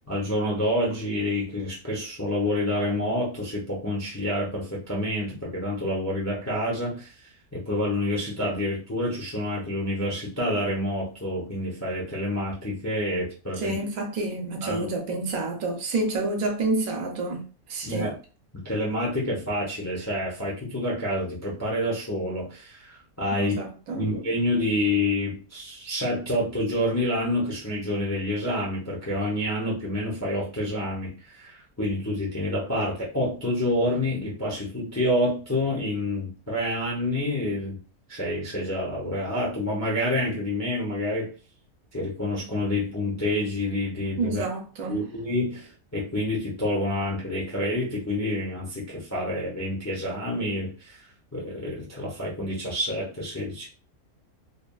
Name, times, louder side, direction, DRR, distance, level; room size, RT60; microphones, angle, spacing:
voice 1, 0.1-7.1 7.5-13.7 14.6-14.9 17.8-18.1 18.6-23.5 24.0-37.8 38.1-41.3 41.9-44.4 44.9-51.0 51.3-53.7, left 1 dB, 20° left, 0.4 m, -28 dB
voice 2, 13.6-18.1 23.3-24.1 44.2-45.0, right 2 dB, 75° right, 1.2 m, -29 dB
3.1 x 2.3 x 2.3 m
omnidirectional pair, 1.5 m